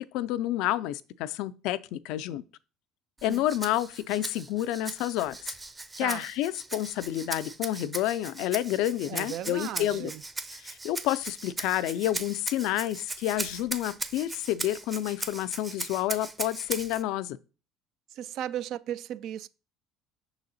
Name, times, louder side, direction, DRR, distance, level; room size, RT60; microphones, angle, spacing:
voice 1, 0.0-2.4 3.2-5.5 6.0-10.1 10.6-17.4, left 13 dB, 70° left, 0.3 m, -29 dB
Rattle (instrument), 3.2-17.0, right 2 dB, 20° right, 0.6 m, -38 dB
voice 2, 9.1-10.2 18.2-19.5, right 11 dB, 65° right, 0.3 m, -36 dB
6.0 x 3.9 x 4.0 m
hypercardioid pair, 75°, 0 cm